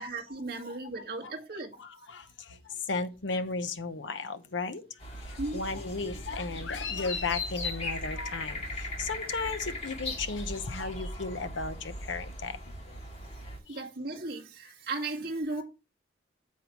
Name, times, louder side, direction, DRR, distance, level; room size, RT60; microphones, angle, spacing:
voice 1, 0.0-1.7 5.4-5.6 13.7-15.6, right 2 dB, 50° right, 1.9 m, -36 dB
voice 2, 0.6-1.4 1.8-4.8 5.2-12.6 12.9-13.0 13.7-13.8, left 4 dB, 80° left, 0.9 m, -35 dB
sound 1, 5.0-13.6, left 1 dB, 35° left, 2.5 m, -38 dB
8.5 x 7.7 x 3.1 m
head